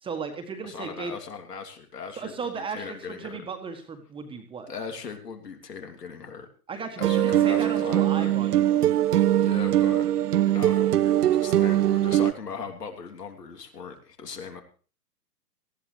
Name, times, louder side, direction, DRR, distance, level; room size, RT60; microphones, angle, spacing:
voice 1, 0.0-1.1 2.2-4.7 6.7-8.7, right 5 dB, 10° right, 5 dB, 1.5 m, -35 dB
voice 2, 0.6-3.4 4.7-6.5 7.0-8.3 9.3-10.1 10.5-14.6, left 5 dB, 75° left, 5 dB, 3.2 m, -39 dB
sound 1, 7.0-12.3, right 12 dB, 70° right, 0.6 m, -22 dB
18.5 x 14.5 x 3.4 m, 0.38 s
hypercardioid pair, 125°, 48 cm